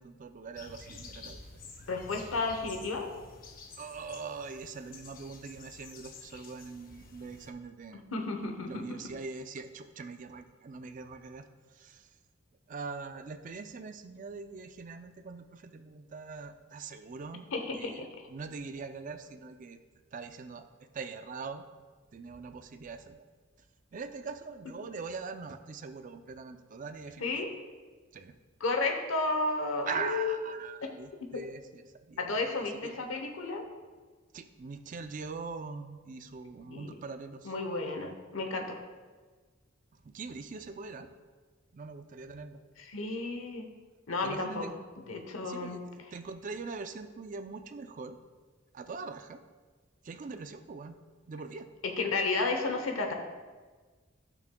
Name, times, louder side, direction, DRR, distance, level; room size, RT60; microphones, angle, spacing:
voice 1, 0.0-1.4 3.8-8.0 8.6-11.5 11.7-12.1 12.7-17.5 17.8-18.0 18.3-19.8 20.1-20.7 20.9-21.6 22.1-23.2 23.9-27.5 28.1-28.3 29.9-32.6 32.8-33.0 34.3-37.5 40.0-41.1 41.7-42.6 44.2-44.8 45.4-48.2 48.7-49.4 50.0-50.9 51.3-51.7, right 4 dB, 40° right, 8 dB, 0.4 m, -42 dB
sound 1, 0.5-7.5, left 3 dB, 45° left, 0.7 m, -50 dB
voice 2, 1.9-3.1 8.1-9.0 17.5-18.3 27.2-27.5 28.6-30.4 31.2-31.4 32.2-33.6 36.6-36.9 37.4-38.8 42.8-43.7 44.1-44.7 45.1-45.8 51.8-53.1, left 3 dB, 90° left, 4 dB, 0.9 m, -32 dB
12.5 x 6.0 x 2.2 m, 1.4 s
head